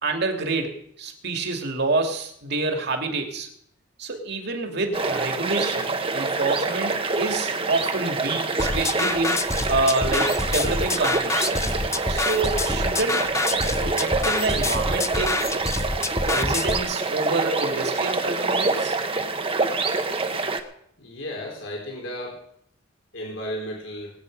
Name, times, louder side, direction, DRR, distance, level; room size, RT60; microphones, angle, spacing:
voice 1, 0.0-3.5 4.0-11.5 12.1-13.4 13.8-15.4 16.3-19.0, right 3 dB, 55° right, 3 dB, 2.4 m, -27 dB
sound 1, 4.9-20.6, right 3 dB, 30° right, 1.1 m, -26 dB
sound 2, 8.6-16.8, left 2 dB, 15° left, 0.6 m, -27 dB
voice 2, 21.0-22.4 23.1-24.1, equal, 75° left, -1 dB, 3.9 m, -34 dB
20.5 x 9.1 x 5.3 m, 0.70 s
head